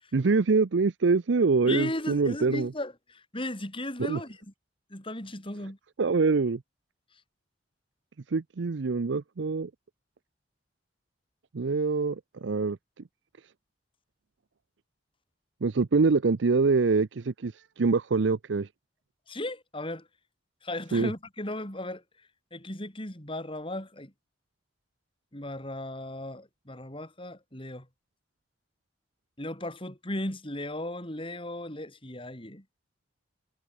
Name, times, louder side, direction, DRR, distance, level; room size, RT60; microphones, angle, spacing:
voice 1, 0.1-2.7 4.1-4.2 6.0-6.6 8.3-9.7 11.5-12.8 15.6-18.7 20.9-21.1, right 4 dB, 80° right, 0.6 m, -25 dB
voice 2, 1.7-4.4 4.9-5.8 19.3-20.1 20.6-22.0 22.5-24.1 25.3-27.9 29.4-32.6, left 1 dB, 30° left, 6.4 m, -36 dB
head